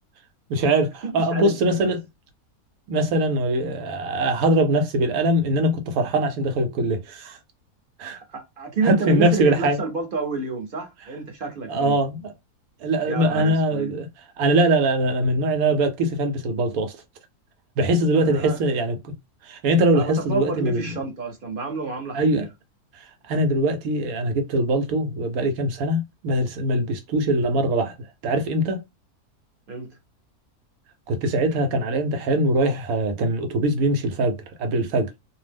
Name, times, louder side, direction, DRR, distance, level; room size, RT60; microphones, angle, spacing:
voice 1, 0.5-2.1 2.9-7.4 8.0-8.2 8.8-9.8 11.7-12.3 12.8-14.1 14.4-16.9 17.8-19.1 19.4-20.9 22.1-22.4 22.9-27.9 28.2-28.8 31.1-35.1, right 1 dB, 75° right, 1.1 m, -22 dB
voice 2, 1.0-1.8 8.1-12.0 13.1-13.9 18.1-18.6 19.9-22.5 29.7-30.0, right 4 dB, 45° right, 0.8 m, -29 dB
2.6 x 2.0 x 3.3 m
omnidirectional pair, 1.6 m